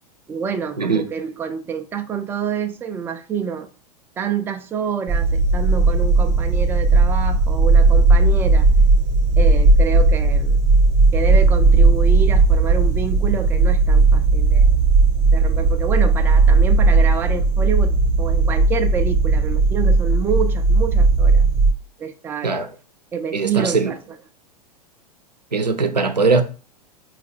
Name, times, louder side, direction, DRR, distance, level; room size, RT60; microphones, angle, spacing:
voice 1, 0.3-3.7 4.2-8.7 9.4-10.6 11.1-14.8 15.3-21.5 22.0-22.6 23.1-24.2, right 6 dB, 10° right, 0.4 m, -27 dB
sound 1, 5.1-21.7, right 3 dB, 30° right, 0.8 m, -16 dB
voice 2, 23.3-23.9 25.5-26.4, right 4 dB, 85° right, 0.6 m, -20 dB
4.1 x 2.5 x 4.1 m
figure-of-eight pair, 95°, 21 cm